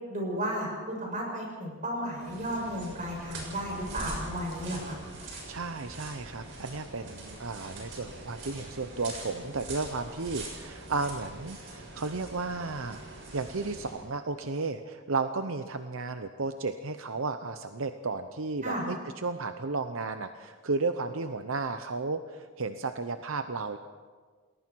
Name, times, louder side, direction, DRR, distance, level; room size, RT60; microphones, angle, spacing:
voice 1, 0.1-5.0 18.6-18.8, equal, 35° right, -1 dB, 7.1 m, -33 dB
sound 1, 2.2-14.1, right 2 dB, 55° right, 6.9 m, -43 dB
voice 2, 5.5-13.0 13.3-23.8, right 3 dB, 75° right, 8 dB, 0.8 m, -33 dB
29.0 x 20.5 x 4.7 m, 1.5 s
head